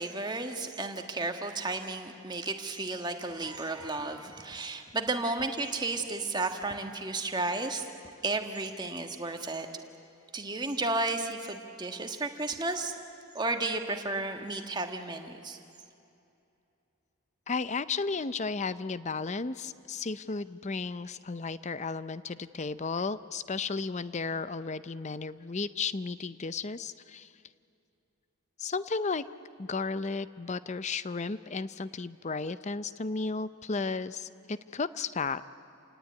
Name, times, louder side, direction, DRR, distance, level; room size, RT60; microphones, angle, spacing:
voice 1, 0.0-7.9 8.2-9.7 10.3-12.9 13.3-15.6, right 2 dB, 20° right, 5 dB, 1.5 m, -33 dB
voice 2, 17.5-27.3 28.6-29.3 29.6-35.4, left 4 dB, 30° left, 15 dB, 0.6 m, -34 dB
29.0 x 18.0 x 9.5 m, 2.7 s
head